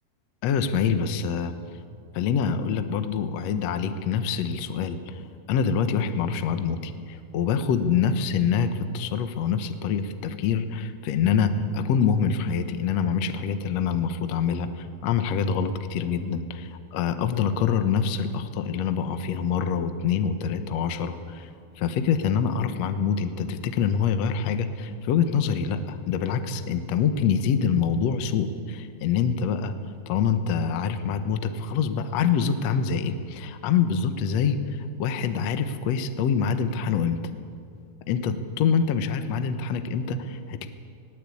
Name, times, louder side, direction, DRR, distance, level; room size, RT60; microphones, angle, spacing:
voice 1, 0.4-1.5 2.1-5.2 5.5-21.5 21.8-29.7 30.1-37.2 38.1-40.7, left 6 dB, 65° left, 9 dB, 1.7 m, -25 dB
20.5 x 17.5 x 8.5 m, 2.2 s
omnidirectional pair, 4.4 m